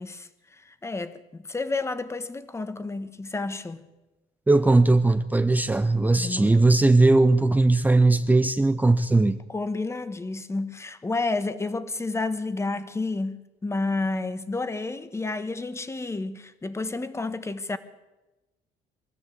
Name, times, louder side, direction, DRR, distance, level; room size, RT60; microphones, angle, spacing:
voice 1, 0.0-3.8 6.1-6.6 9.5-17.8, left 3 dB, 15° left, 1.3 m, -30 dB
voice 2, 4.5-9.4, right 2 dB, 10° right, 0.7 m, -19 dB
23.5 x 13.5 x 8.3 m
cardioid pair, 110°, 17 cm